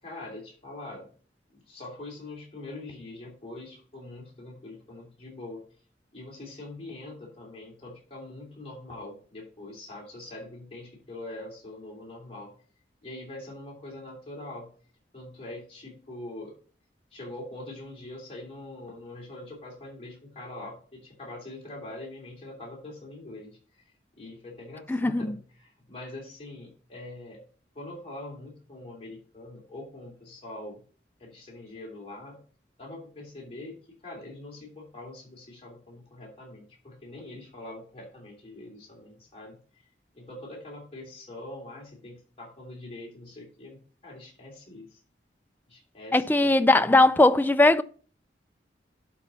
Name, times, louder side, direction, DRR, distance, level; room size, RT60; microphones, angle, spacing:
voice 1, 0.0-1.1 1.5-5.6 6.1-12.5 13.0-14.7 15.1-16.5 17.1-23.8 24.2-27.4 27.7-30.8 31.2-32.4 32.8-39.8 40.1-45.0 45.7-46.2 46.7-47.0, left 2 dB, 35° left, 2.9 m, -43 dB
voice 2, 24.9-25.3 46.1-47.8, left 2 dB, 10° left, 0.3 m, -19 dB
11.5 x 4.5 x 4.0 m
head